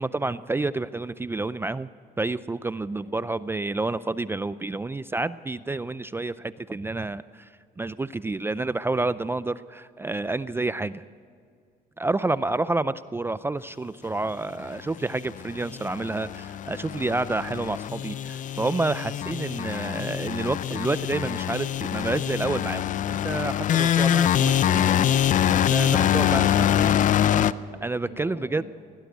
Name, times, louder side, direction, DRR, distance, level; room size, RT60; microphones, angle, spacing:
voice 1, 0.0-1.9 2.2-11.0 12.0-25.0 25.5-27.0 27.8-28.6, right 2 dB, 15° right, 15 dB, 0.4 m, -29 dB
voice 2, 2.9-3.3 12.1-12.6 26.9-28.7, left 1 dB, 70° left, 2 dB, 7.8 m, -47 dB
sound 1, 15.2-27.5, left 10 dB, 50° left, 0.6 m, -24 dB
20.5 x 17.5 x 8.1 m, 2.2 s
cardioid pair, 110°, 17 cm